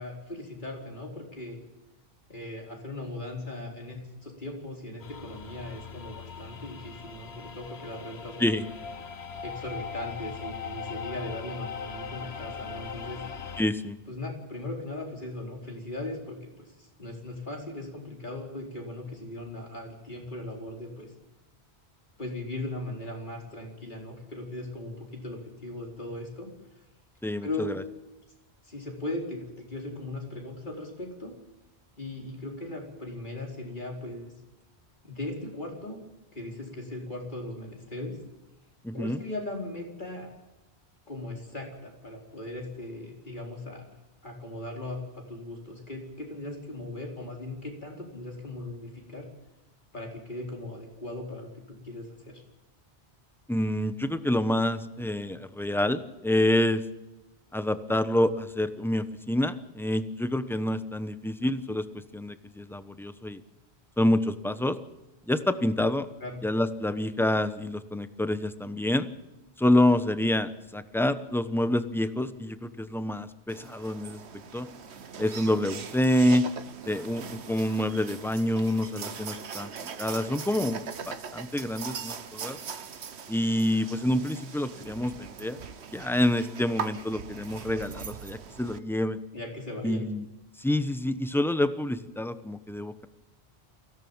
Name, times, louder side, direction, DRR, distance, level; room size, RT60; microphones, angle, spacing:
voice 1, 0.0-1.6 2.3-8.5 9.4-13.2 14.1-21.1 22.2-26.5 27.4-27.7 28.6-31.3 32.0-34.3 35.0-36.0 36.3-38.2 38.9-40.3 41.1-43.8 44.2-49.3 49.9-52.4 66.2-66.4 89.3-90.0, left 2 dB, 45° left, 0 dB, 4.7 m, -38 dB
sound 1, 5.0-13.6, left 6 dB, 70° left, 1.5 m, -40 dB
voice 2, 13.6-14.0 27.2-27.7 38.8-39.2 53.5-56.8 57.5-61.8 62.1-63.4 64.0-64.8 65.3-66.1 66.4-69.1 69.6-74.2 74.5-74.7 75.2-76.4 76.9-79.7 80.0-80.8 81.1-82.6 83.3-85.6 85.9-89.2 89.8-90.2 90.6-93.1, left 1 dB, ahead, 11 dB, 1.0 m, -27 dB
sound 2, 73.5-88.8, right 6 dB, 80° right, 1.3 m, -41 dB
23.0 x 16.5 x 7.2 m, 1.0 s
omnidirectional pair, 1.1 m